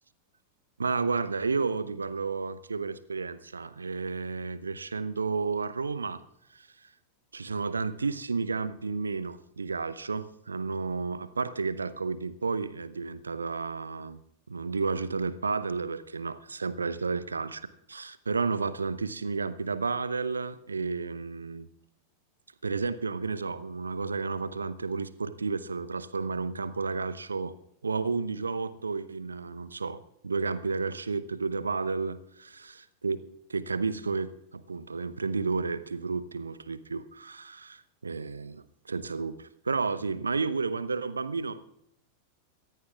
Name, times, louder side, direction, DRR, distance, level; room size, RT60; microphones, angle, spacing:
voice 1, 0.8-6.2 6.5-6.7 7.3-14.2 14.5-17.6 17.9-21.7 22.6-27.5 27.8-33.2 33.5-41.6, right 4 dB, 75° right, 16 dB, 0.7 m, -32 dB
23.5 x 16.0 x 2.4 m, 0.80 s
figure-of-eight pair, 90°, 0 cm